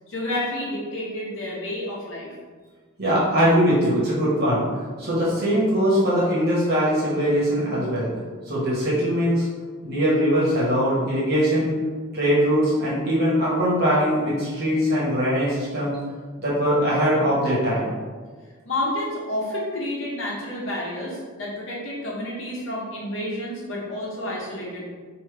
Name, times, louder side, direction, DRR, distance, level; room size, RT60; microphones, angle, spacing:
voice 1, 0.1-2.3 18.6-24.9, left 1 dB, 65° left, -4 dB, 1.0 m, -30 dB
voice 2, 3.0-4.7 5.0-8.1 8.5-9.5 9.8-11.7 12.1-16.0 16.4-17.9, equal, 50° right, -7 dB, 1.3 m, -21 dB
5.2 x 2.8 x 3.3 m, 1.5 s
head